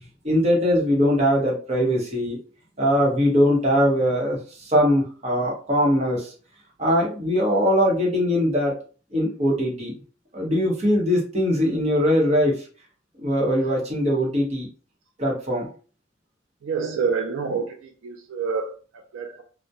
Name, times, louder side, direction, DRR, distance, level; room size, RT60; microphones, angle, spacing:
voice 1, 0.2-2.4 2.8-6.3 6.8-8.7 9.1-9.9 10.3-12.5 13.2-14.7 15.2-15.7, equal, 35° right, 0.8 m, -21 dB
voice 2, 16.6-19.4, right 5 dB, 80° right, 0.3 m, -28 dB
2.2 x 2.1 x 2.7 m
head